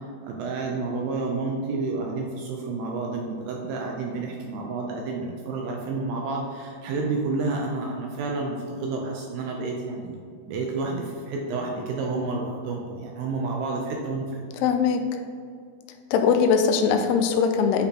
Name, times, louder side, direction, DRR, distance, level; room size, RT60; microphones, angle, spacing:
voice 1, 0.2-10.2 10.4-14.4, right 3 dB, 80° right, 0 dB, 2.1 m, -30 dB
voice 2, 14.6-15.0 16.1-17.9, left 6 dB, 85° left, 6 dB, 2.5 m, -21 dB
8.4 x 4.2 x 2.8 m, 2.3 s
omnidirectional pair, 4.6 m